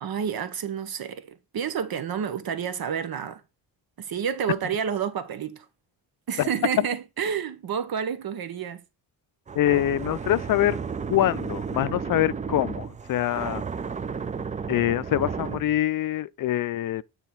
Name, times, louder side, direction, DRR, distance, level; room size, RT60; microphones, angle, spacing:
voice 1, 0.0-1.3 1.5-3.4 4.0-5.7 6.3-8.8, right 8 dB, 60° right, 0.8 m, -29 dB
sound 1, 9.5-15.8, right 6 dB, 20° right, 0.3 m, -33 dB
voice 2, 9.6-10.8 11.1-13.6 14.7-17.0, left 13 dB, 55° left, 0.5 m, -24 dB
9.2 x 3.6 x 4.4 m
cardioid pair, 120°, 40 cm